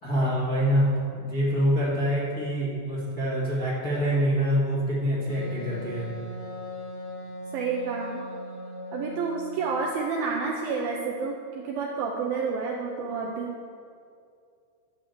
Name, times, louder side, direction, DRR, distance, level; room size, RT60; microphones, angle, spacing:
voice 1, 0.0-6.1, equal, 40° left, -7 dB, 1.3 m, -25 dB
Wind instrument woodwind instrument, 5.3-9.9, equal, 70° left, 3.3 m, -39 dB
voice 2, 7.5-8.3 8.9-13.5, right 5 dB, 90° right, -1 dB, 2.1 m, -29 dB
12.5 x 5.0 x 7.8 m, 2.4 s
omnidirectional pair, 5.1 m